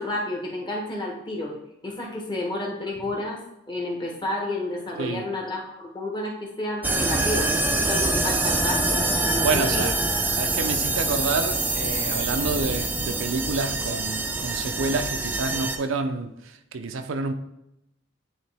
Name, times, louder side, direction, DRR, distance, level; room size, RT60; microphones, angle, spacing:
voice 1, 0.0-1.5 1.8-3.4 3.7-9.8, left 1 dB, 20° left, 1.1 m, -31 dB
sound 1, 6.8-15.8, right 2 dB, 10° right, 0.3 m, -25 dB
voice 2, 9.4-9.9 10.3-17.3, right 3 dB, 75° right, 0.5 m, -28 dB
9.4 x 3.2 x 3.4 m
head